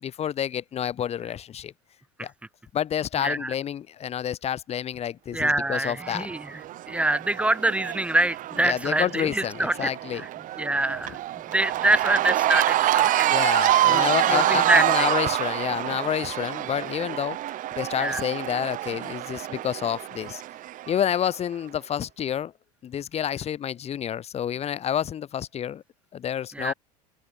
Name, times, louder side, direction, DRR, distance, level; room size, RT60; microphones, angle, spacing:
voice 1, 0.0-1.7 2.2-2.3 2.7-6.3 8.6-10.2 13.3-17.4 17.8-20.4 20.9-22.5 22.8-25.8 26.1-26.7, left 9 dB, 30° left, 2.7 m, -29 dB
voice 2, 3.2-3.5 5.3-6.6 6.9-10.3 10.6-11.2 11.5-13.5 13.8-15.1 18.0-18.2 26.5-26.7, right 1 dB, 5° right, 3.8 m, -25 dB
Cheering / Crowd, 6.0-21.3, right 14 dB, 40° right, 3.4 m, -27 dB
open air
figure-of-eight pair, 75°, 21 cm